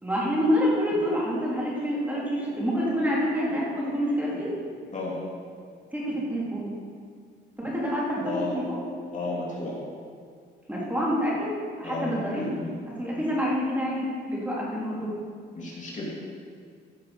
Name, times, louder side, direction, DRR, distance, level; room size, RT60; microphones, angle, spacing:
voice 1, 0.0-4.5 5.9-6.7 7.6-8.8 10.7-12.4 13.0-15.1, equal, 10° right, -6 dB, 3.5 m, -27 dB
voice 2, 8.2-8.5 9.1-9.8 11.8-12.7 15.5-16.1, left 2 dB, 40° left, -4 dB, 2.9 m, -32 dB
14.5 x 6.5 x 6.0 m, 2.1 s
cardioid pair, 90°, 20 cm